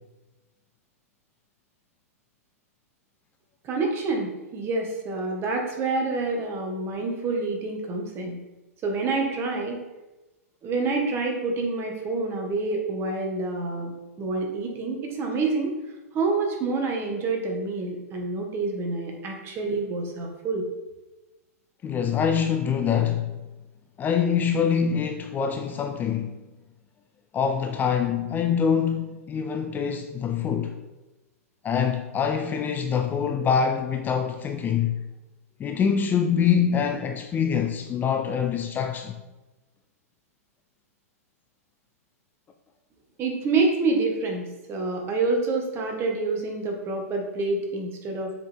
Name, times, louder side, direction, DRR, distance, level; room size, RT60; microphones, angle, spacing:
voice 1, 3.6-8.4 8.8-9.8 10.6-15.7 16.1-20.7 43.2-48.4, right 3 dB, 30° right, 1.5 m, -27 dB
voice 2, 21.8-23.4 24.0-26.4 27.3-30.8 31.6-35.0 35.6-39.2, left 7 dB, 20° left, 0.5 m, -25 dB
6.9 x 4.9 x 3.5 m
hypercardioid pair, 110°, 8 cm